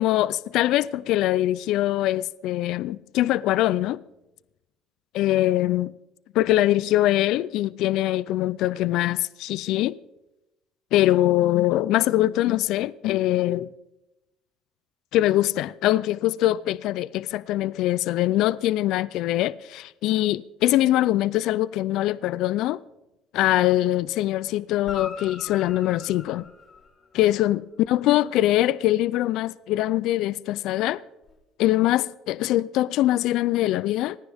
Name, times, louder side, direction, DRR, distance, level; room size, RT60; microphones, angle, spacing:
voice 1, 0.0-4.0 5.1-5.9 6.3-10.0 10.9-13.7 15.1-22.8 23.3-26.5 27.1-31.0 31.6-34.2, left 15 dB, 65° left, 0.4 m, -23 dB
Guitar, 24.8-27.4 31.2-31.3, left 5 dB, 35° left, 3.4 m, -41 dB
28.5 x 9.9 x 3.5 m
cardioid pair, 130°, 0 cm